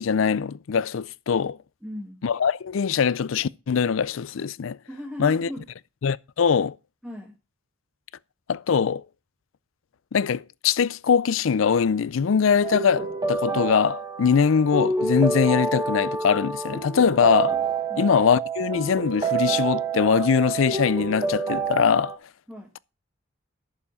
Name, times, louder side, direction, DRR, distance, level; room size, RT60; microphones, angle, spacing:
voice 1, 0.0-1.6 2.2-4.8 5.2-5.5 6.0-6.8 8.5-9.0 10.1-17.6 18.0-22.1, left 6 dB, 80° left, 0.4 m, -22 dB
voice 2, 1.8-2.2 4.9-5.7 7.0-7.4 17.9-18.1 22.5-22.7, left 1 dB, 5° right, 1.4 m, -37 dB
sound 1, 12.6-22.1, right 4 dB, 20° right, 1.6 m, -28 dB
11.0 x 7.2 x 4.9 m
head